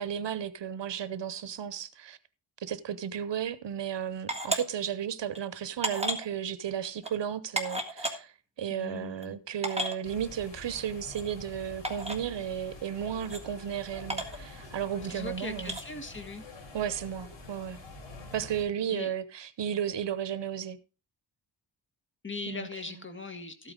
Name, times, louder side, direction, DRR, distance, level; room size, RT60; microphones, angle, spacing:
voice 1, 0.0-2.2 2.6-15.8 16.7-17.8 18.3-20.8 22.5-22.7, right 9 dB, 70° right, 0.9 m, -34 dB
sound 1, 4.3-4.6 5.3-5.4 5.8-6.3 7.0-7.1 7.6-8.1 9.0-9.1 9.2-9.3 9.6-10.0 11.1-11.2 11.8-12.2 13.2-13.4 14.1-14.4 15.6-15.8, right 1 dB, 15° right, 1.7 m, -32 dB
voice 2, 8.7-9.4 15.0-16.4 18.9-19.1 22.2-23.7, left 3 dB, 25° left, 1.7 m, -40 dB
sound 2, 10.0-18.6, left 2 dB, 90° left, 4.5 m, -47 dB
13.5 x 8.6 x 3.8 m
wide cardioid pair, 125°, 44 cm